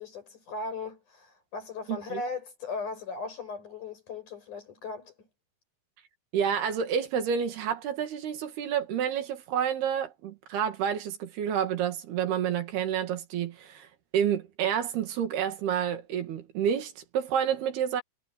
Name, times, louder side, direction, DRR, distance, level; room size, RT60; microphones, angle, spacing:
voice 1, 0.0-5.3, left 3 dB, 50° left, 8.4 m, -38 dB
voice 2, 1.9-2.2 6.3-13.9 14.1-18.0, right 8 dB, 85° right, 4.1 m, -29 dB
omnidirectional pair, 4.5 m